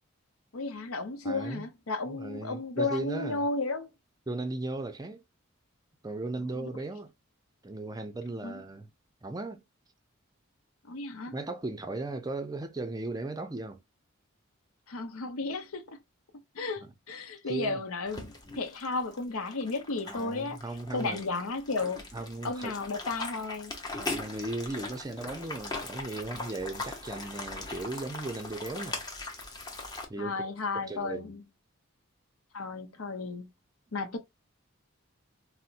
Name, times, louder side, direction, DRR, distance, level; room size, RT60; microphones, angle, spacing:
voice 1, 0.5-3.9 6.5-6.7 8.4-8.6 10.8-11.3 14.9-16.0 16.5-20.6 20.9-22.1 22.4-23.7 30.2-31.4 32.5-33.5 33.9-34.2, left 3 dB, 80° left, 0.7 m, -33 dB
voice 2, 1.2-1.7 2.1-3.5 4.3-5.2 6.0-7.1 7.6-8.9 9.2-9.6 11.3-13.8 17.5-17.8 20.1-21.2 22.1-22.8 23.9-29.0 30.1-31.3, right 2 dB, 15° right, 0.4 m, -37 dB
sound 1, 18.1-30.1, left 2 dB, 20° left, 0.7 m, -40 dB
4.1 x 2.1 x 2.4 m
head